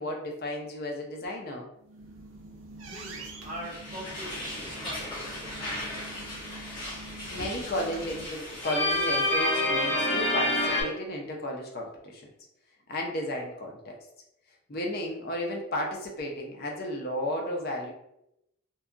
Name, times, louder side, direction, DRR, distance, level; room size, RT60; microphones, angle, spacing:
voice 1, 0.0-1.7 7.3-12.3 12.9-14.0 14.7-17.9, left 1 dB, 50° left, 1 dB, 0.5 m, -33 dB
sound 1, 1.8-8.3, right 2 dB, 75° right, 0.5 m, -45 dB
voice 2, 2.8-5.9, right 1 dB, 40° right, -5 dB, 0.9 m, -43 dB
sound 2, 3.6-10.8, left 1 dB, 25° left, 1.1 m, -30 dB
2.7 x 2.2 x 2.4 m, 0.82 s
head